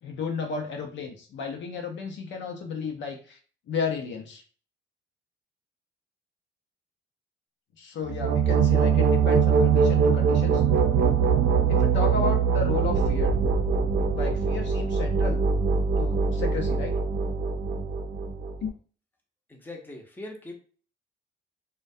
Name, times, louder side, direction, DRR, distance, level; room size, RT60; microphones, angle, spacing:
voice 1, 0.0-3.4 3.7-4.4 7.8-10.6 11.7-13.3 14.1-15.4 16.0-16.9 18.6-18.7, left 5 dB, 65° left, 3 dB, 0.6 m, -33 dB
sound 1, 8.0-18.7, right 6 dB, 55° right, 0.5 m, -23 dB
voice 2, 19.5-20.6, left 2 dB, 10° left, 1 dB, 0.7 m, -41 dB
2.2 x 2.2 x 2.6 m, 0.40 s
cardioid pair, 90°, 20 cm